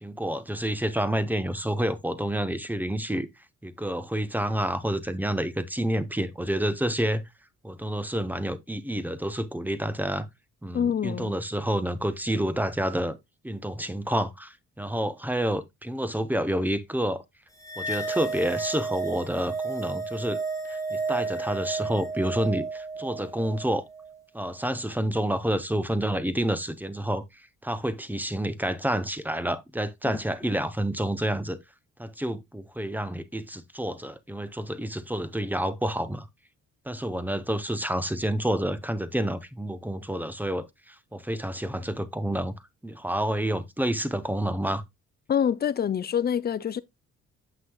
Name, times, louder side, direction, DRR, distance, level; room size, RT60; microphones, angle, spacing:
voice 1, 0.0-3.3 3.6-7.2 7.6-10.3 10.6-13.2 13.4-17.2 17.8-20.4 20.7-23.8 24.3-27.2 27.6-31.6 32.0-36.3 36.9-42.5 42.8-44.8, right 1 dB, 5° right, 0.7 m, -29 dB
voice 2, 10.7-11.3 30.0-30.1 45.3-46.8, left 8 dB, 30° left, 0.5 m, -26 dB
sound 1, 17.6-24.2, right 3 dB, 10° left, 1.5 m, -32 dB
7.8 x 6.0 x 2.2 m
cardioid pair, 90°, 30 cm